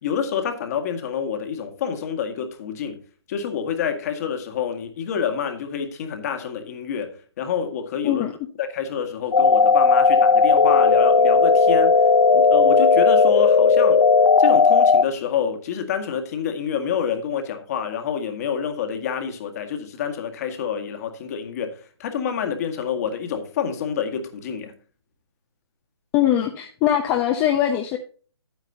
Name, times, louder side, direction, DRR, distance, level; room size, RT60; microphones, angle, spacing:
voice 1, 0.0-8.2 8.6-12.0 12.3-14.0 14.4-24.7, left 7 dB, 35° left, 1.8 m, -28 dB
sound 1, 9.3-15.0, left 4 dB, 75° left, 1.0 m, -15 dB
voice 2, 26.1-28.0, left 11 dB, 20° left, 0.8 m, -21 dB
10.5 x 9.4 x 2.8 m
figure-of-eight pair, 135°, 14 cm